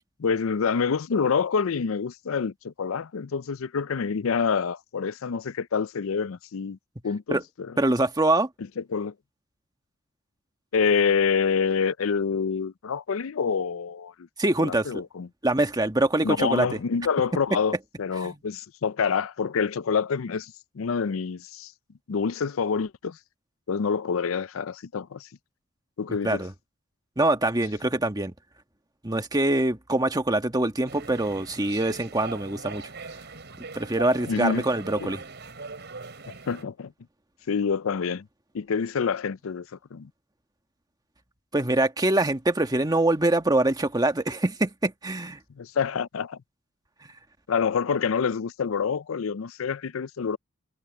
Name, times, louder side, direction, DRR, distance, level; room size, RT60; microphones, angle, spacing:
voice 1, 0.2-6.8 7.0-7.7 8.8-9.1 10.7-14.3 14.6-15.3 16.2-21.7 22.1-23.2 23.7-25.3 26.0-26.4 34.3-34.6 35.0-35.1 36.5-36.9 37.5-38.3 38.5-40.1 45.6-46.4 47.5-50.4, left 6 dB, 85° left, 0.5 m, -27 dB
voice 2, 7.8-8.5 14.4-15.0 15.4-16.8 18.2-18.4 26.2-26.5 27.2-28.3 29.0-32.9 33.7-35.2 41.5-45.4, right 2 dB, 20° right, 1.5 m, -24 dB
sound 1, 30.9-36.6, right 4 dB, 55° right, 5.7 m, -40 dB
head